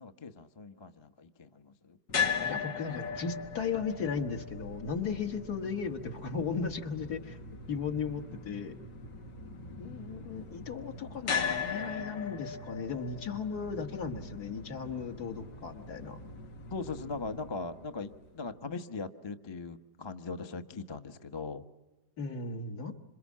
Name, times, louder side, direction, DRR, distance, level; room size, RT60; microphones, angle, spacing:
voice 1, 0.0-2.0 9.5-9.9 16.7-21.6, left 4 dB, 25° left, 8 dB, 0.7 m, -40 dB
sound 1, 2.1-18.2, left 6 dB, 80° left, 2.6 m, -39 dB
voice 2, 2.4-7.4 7.7-8.8 9.8-16.2 22.2-22.9, left 5 dB, 60° left, 5 dB, 2.1 m, -36 dB
27.0 x 26.5 x 7.4 m, 1.1 s
omnidirectional pair, 1.9 m